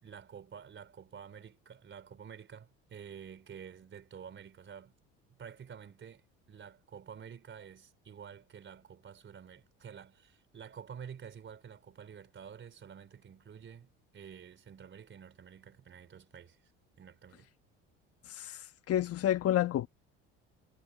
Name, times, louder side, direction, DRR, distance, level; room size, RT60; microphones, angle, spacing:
voice 1, 0.0-5.0 5.3-16.7 17.0-17.5, right 7 dB, 40° right, 4.2 m, -50 dB
voice 2, 18.3-19.9, left 12 dB, 50° left, 1.3 m, -30 dB
supercardioid pair, 85°, 30 cm